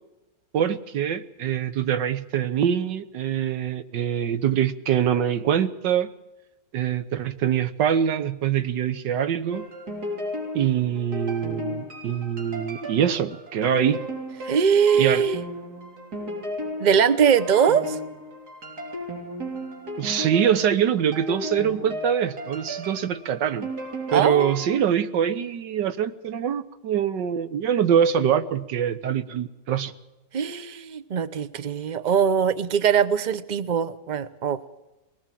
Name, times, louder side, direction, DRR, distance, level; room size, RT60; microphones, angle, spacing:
voice 1, 0.5-6.1 6.7-9.6 10.5-14.0 14.9-15.2 20.0-23.7 24.1-29.9, right 9 dB, 90° right, 1.7 m, -24 dB
sound 1, 9.5-24.8, equal, 60° right, 3.9 m, -35 dB
voice 2, 14.4-15.4 16.8-18.0 24.1-24.6 30.3-34.6, right 7 dB, 40° right, 0.6 m, -21 dB
22.5 x 19.5 x 7.6 m
omnidirectional pair, 1.9 m